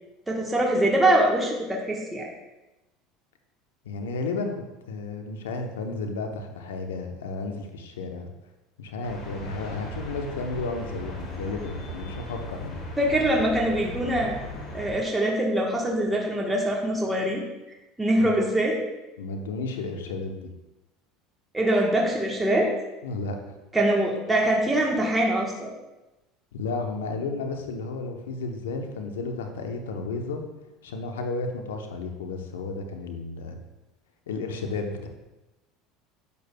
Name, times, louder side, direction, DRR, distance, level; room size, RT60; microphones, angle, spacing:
voice 1, 0.3-2.3 13.0-14.4 14.7-17.4 18.0-18.8 21.5-22.7 23.7-25.7, right 1 dB, 10° right, -2 dB, 1.2 m, -23 dB
voice 2, 3.8-4.5 4.9-8.3 8.8-12.8 18.2-18.3 19.2-20.5 23.0-23.5 26.5-30.4 30.8-33.6 34.3-35.1, left 3 dB, 90° left, 4 dB, 0.8 m, -32 dB
sound 1, 9.0-15.0, left 1 dB, 40° left, 2.3 m, -37 dB
8.4 x 6.8 x 2.2 m, 1.0 s
hypercardioid pair, 90°, 0 cm